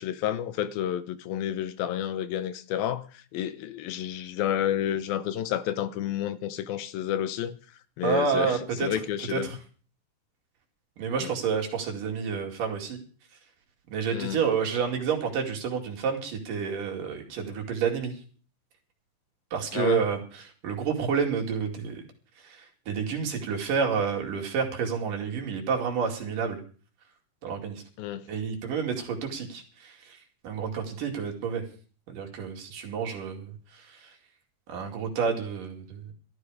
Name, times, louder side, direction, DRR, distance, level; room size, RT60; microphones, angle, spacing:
voice 1, 0.0-7.6 8.0-9.5 11.2-11.3 14.1-14.4 19.7-20.0 28.0-28.3, left 10 dB, 80° left, 2.7 m, -30 dB
voice 2, 8.0-9.0 9.3-9.6 11.0-13.0 13.9-18.2 19.5-22.0 22.4-26.6 27.4-27.8 28.3-31.6 32.1-34.2 34.7-36.1, right 6 dB, 65° right, 4.0 m, -29 dB
16.5 x 13.0 x 4.9 m
omnidirectional pair, 4.2 m